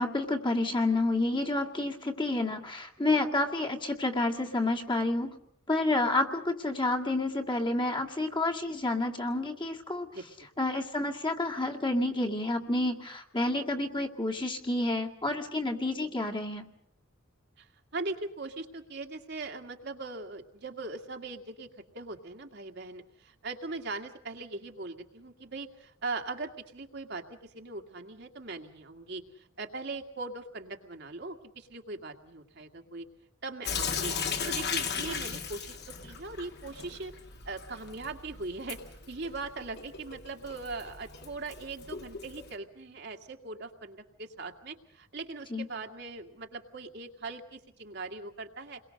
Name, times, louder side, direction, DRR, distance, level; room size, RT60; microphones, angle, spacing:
voice 1, 0.0-5.4 5.7-10.1 10.6-16.7 45.5-45.7, left 2 dB, 25° left, 1 dB, 2.0 m, -29 dB
voice 2, 17.6-21.7 21.9-27.2 27.5-33.1 33.4-34.1 34.5-37.1 37.5-38.8 39.1-48.8, right 3 dB, 55° right, 4 dB, 2.2 m, -40 dB
Sink (filling or washing) / Drip, 33.6-42.5, left 6 dB, 50° left, 2.3 m, -37 dB
29.0 x 22.5 x 6.5 m, 0.72 s
head